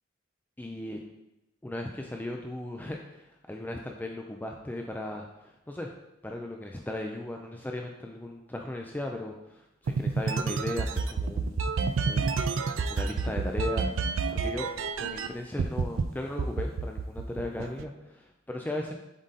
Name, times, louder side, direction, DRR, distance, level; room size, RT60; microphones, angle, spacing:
voice 1, 0.6-1.0 1.6-5.9 6.2-11.7 12.1-12.6 12.9-14.7 15.0-19.0, left 1 dB, 10° left, 2 dB, 0.4 m, -37 dB
sound 1, 9.9-15.3 15.6-16.0 16.4-17.8, right 4 dB, 75° right, 0.4 m, -28 dB
7.4 x 3.8 x 4.0 m, 0.93 s
head